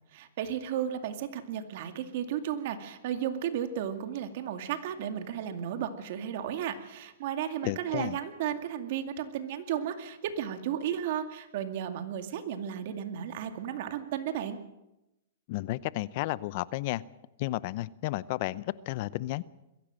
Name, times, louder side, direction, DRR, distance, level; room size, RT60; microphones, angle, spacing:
voice 1, 0.1-14.6, right 9 dB, 55° right, 7 dB, 2.3 m, -34 dB
voice 2, 7.6-8.2 15.5-17.0 17.4-19.4, left 17 dB, 45° left, 19 dB, 0.6 m, -32 dB
22.0 x 15.5 x 7.7 m, 0.94 s
hypercardioid pair, 145°, 0 cm